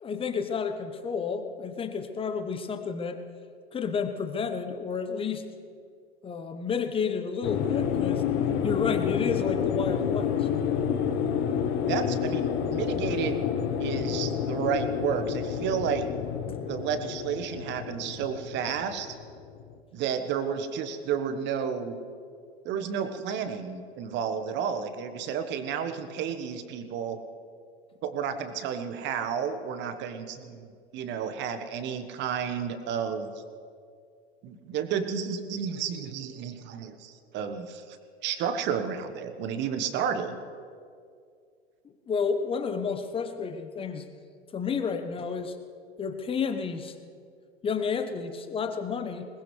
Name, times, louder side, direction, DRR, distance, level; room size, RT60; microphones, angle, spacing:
voice 1, 0.0-3.2 3.7-5.5 6.2-8.3 8.6-10.5 16.5-16.6 42.1-44.1 44.5-45.6 46.0-46.9 47.6-49.3, left 5 dB, 15° left, 8 dB, 1.1 m, -31 dB
sound 1, 7.4-19.7, left 8 dB, 45° left, 1.4 m, -29 dB
voice 2, 11.8-13.5 13.8-16.1 16.6-19.1 19.9-22.0 22.6-27.2 28.0-30.7 30.9-33.3 34.4-38.0 38.2-40.4, right 7 dB, 35° right, 9 dB, 1.3 m, -31 dB
21.5 x 19.5 x 3.3 m, 2.3 s
figure-of-eight pair, 90°, 31 cm